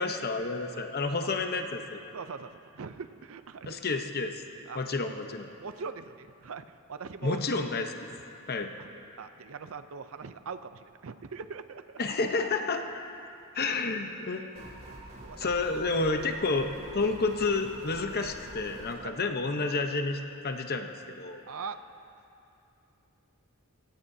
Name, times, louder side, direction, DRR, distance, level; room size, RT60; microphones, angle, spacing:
voice 1, 0.0-2.0 3.7-4.4 4.7-5.5 7.2-7.9 8.5-8.7 12.0-12.8 13.5-14.4 15.4-21.4, left 3 dB, 45° left, 5 dB, 0.9 m, -30 dB
voice 2, 0.7-1.3 2.1-3.8 4.7-4.8 5.6-7.4 8.8-8.9 9.2-12.0 14.1-14.2 15.2-15.5 19.0-19.1 21.5-21.8, right 5 dB, 65° right, 11 dB, 0.5 m, -42 dB
sound 1, 14.6-19.0, right 1 dB, 45° right, 3.1 m, -46 dB
23.5 x 17.5 x 2.8 m, 2.7 s
head